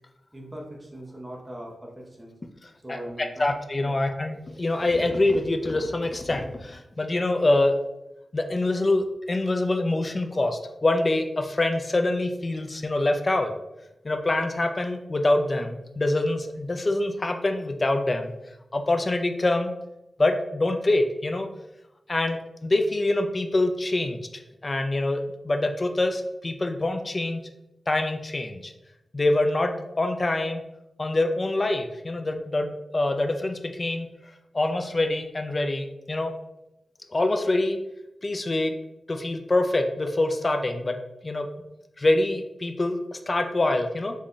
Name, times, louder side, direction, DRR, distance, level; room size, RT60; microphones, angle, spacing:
voice 1, 0.3-2.3 2.8-3.5 3.8-4.0, right 1 dB, 15° right, -2 dB, 0.6 m, -40 dB
voice 2, 3.4-7.8 8.3-13.5 14.0-18.3 18.7-19.7 20.2-21.5 22.1-27.4 27.9-28.7 29.1-30.6 31.0-34.1 34.5-36.3 37.1-37.8 38.2-38.7 39.1-41.0 41.2-41.5 42.0-44.1, left 2 dB, 30° left, 5 dB, 0.3 m, -25 dB
3.5 x 2.1 x 3.7 m, 0.90 s
wide cardioid pair, 120°, 0 cm